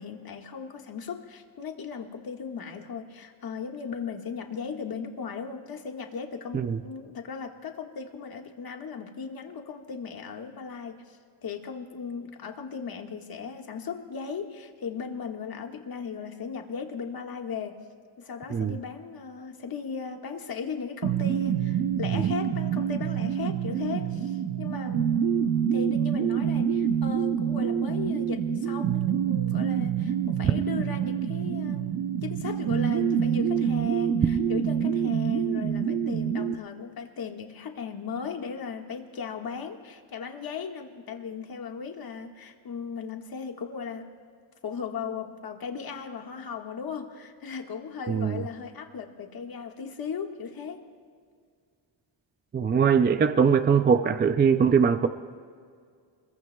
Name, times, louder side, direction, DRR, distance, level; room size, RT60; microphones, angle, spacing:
voice 1, 0.0-17.8 18.2-25.2 25.7-44.1 44.6-50.8, left 6 dB, 50° left, 3 dB, 1.7 m, -37 dB
sound 1, 21.0-36.5, right 8 dB, 55° right, 0.9 m, -26 dB
voice 2, 48.1-48.5 52.5-55.1, right 6 dB, 25° right, 9 dB, 0.4 m, -22 dB
28.5 x 22.0 x 2.3 m, 2.1 s
cardioid pair, 135°, 47 cm